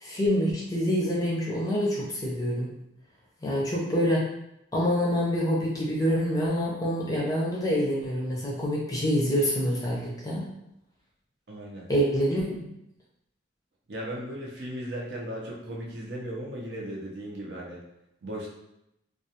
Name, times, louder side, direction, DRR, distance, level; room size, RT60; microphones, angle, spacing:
voice 1, 0.0-2.7 3.4-4.2 4.7-10.5 11.9-12.6, equal, 20° left, -4 dB, 0.5 m, -26 dB
voice 2, 11.5-11.9 13.9-17.8 18.2-18.5, equal, 65° right, -3 dB, 0.6 m, -36 dB
2.3 x 2.3 x 2.8 m, 0.83 s
head